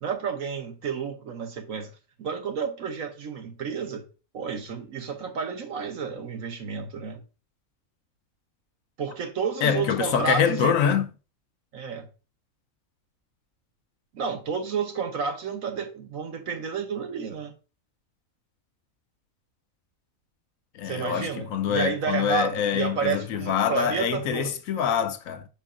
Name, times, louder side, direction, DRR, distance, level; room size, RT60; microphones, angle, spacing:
voice 1, 0.0-1.9 2.2-4.0 4.3-7.2 9.0-10.7 11.7-12.1 14.1-17.5 20.8-24.5, right 6 dB, 65° right, 1.5 m, -31 dB
voice 2, 9.6-11.1 20.7-25.5, left 8 dB, 70° left, 1.1 m, -25 dB
5.5 x 5.0 x 5.0 m
omnidirectional pair, 1.5 m